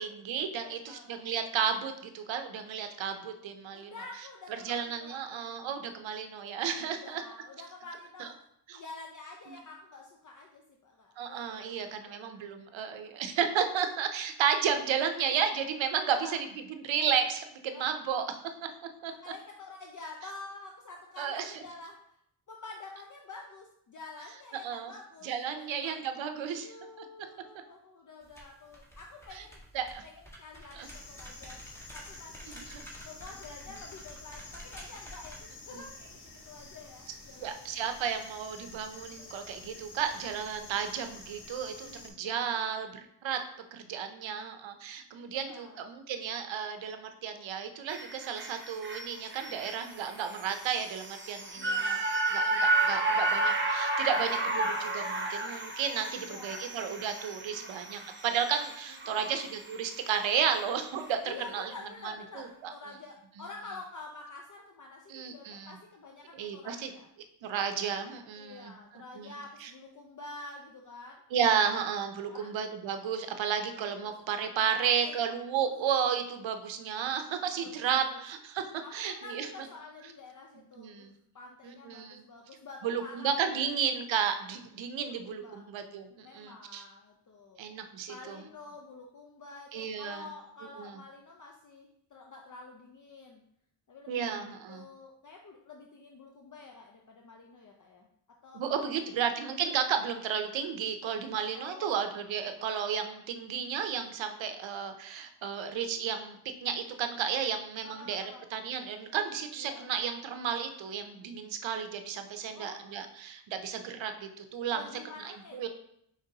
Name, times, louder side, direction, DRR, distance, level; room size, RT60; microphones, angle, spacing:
voice 1, 0.0-3.9 4.6-7.2 8.2-8.3 8.7-8.8 11.2-18.4 19.0-19.1 21.2-21.5 24.6-24.9 25.2-27.1 29.3-29.4 29.7-30.0 30.7-30.9 32.5-32.9 35.7-35.8 37.4-43.4 43.7-52.0 52.3-61.7 62.0-62.7 63.4-63.5 65.1-65.8 66.3-66.9 67.4-68.7 69.2-69.7 71.3-79.5 80.6-81.1 81.6-82.2 82.8-86.8 87.6-88.4 89.7-90.3 90.8-91.0 94.1-94.8 98.5-108.2 108.5-114.9 115.2-115.7, right 7 dB, 85° right, 7 dB, 0.6 m, -33 dB
voice 2, 0.6-1.1 3.7-5.5 6.8-8.4 8.7-12.5 16.1-16.4 17.7-17.8 19.2-22.0 22.5-26.0 26.5-29.6 30.0-30.1 30.4-31.6 31.9-32.7 33.0-37.7 39.2-39.3 39.6-39.8 41.8-42.8 45.1-45.9 51.6-52.0 56.1-56.8 57.5-57.8 59.1-59.4 61.2-67.1 68.4-71.2 72.1-72.5 73.8-74.1 74.8-75.7 77.6-78.2 78.8-81.1 81.3-83.7 84.9-85.6 86.2-87.6 88.1-93.4 93.9-98.1 98.4-99.2 101.5-102.0 107.8-108.5 109.6-109.9 112.5-113.1 114.7-115.7, left 3 dB, 45° left, 1 dB, 0.6 m, -48 dB
sound 1, 28.2-35.4, equal, 5° left, 1.4 m, -50 dB
sound 2, 30.8-42.1, left 3 dB, 85° left, 1.1 m, -49 dB
sound 3, 47.9-60.2 60.6-60.7, right 2 dB, 25° right, 0.7 m, -32 dB
5.2 x 3.2 x 2.7 m, 0.71 s
cardioid pair, 55°, 45 cm